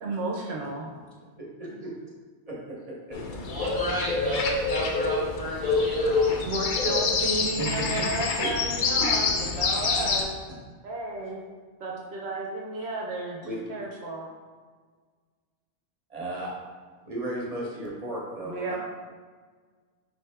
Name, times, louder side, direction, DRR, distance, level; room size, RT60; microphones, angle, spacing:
voice 1, 0.0-0.9 6.5-10.3 10.8-11.4 11.8-14.3 18.4-18.8, right 2 dB, 65° right, -2 dB, 0.9 m, -32 dB
voice 2, 1.3-1.9 2.5-2.6 2.9-3.0 4.2-4.4 7.6-7.7 8.4-8.5 9.0-9.1 13.4-13.6 16.1-16.5 17.1-18.8, right 1 dB, 35° right, -4 dB, 1.0 m, -35 dB
sound 1, 3.1-10.2, left 4 dB, 60° left, 0.5 m, -26 dB
voice 3, 3.4-6.5, equal, 20° left, -7 dB, 0.7 m, -34 dB
4.7 x 3.2 x 3.4 m, 1.5 s
omnidirectional pair, 1.2 m